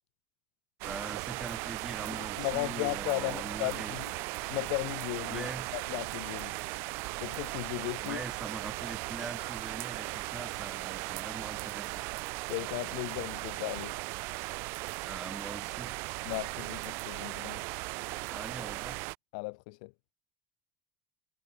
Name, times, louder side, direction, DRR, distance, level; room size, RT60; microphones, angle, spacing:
voice 1, 0.8-4.0 5.3-5.7 8.0-12.0 15.0-16.0 18.3-19.0, right 3 dB, 15° right, 1.0 m, -43 dB
sound 1, 0.8-19.2, right 27 dB, 65° right, 0.3 m, -37 dB
voice 2, 2.4-4.1 4.5-5.5 5.7-6.5 7.2-8.2 12.5-14.0 16.2-17.6 19.3-19.9, left 31 dB, 75° left, 0.7 m, -35 dB
sound 2, 4.4-11.8, left 16 dB, 60° left, 3.8 m, -63 dB
supercardioid pair, 95°, 4 cm